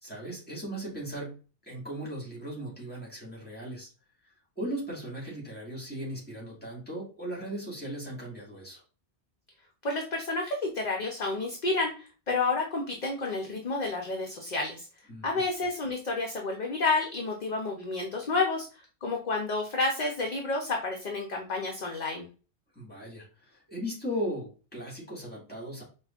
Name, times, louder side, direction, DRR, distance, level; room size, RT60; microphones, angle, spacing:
voice 1, 0.0-3.9 4.2-8.8 15.1-15.4 22.7-25.8, equal, 10° left, -4 dB, 1.6 m, -38 dB
voice 2, 9.8-14.9 15.2-22.3, left 3 dB, 50° left, 1 dB, 0.6 m, -30 dB
4.8 x 2.4 x 2.4 m, 0.35 s
omnidirectional pair, 1.2 m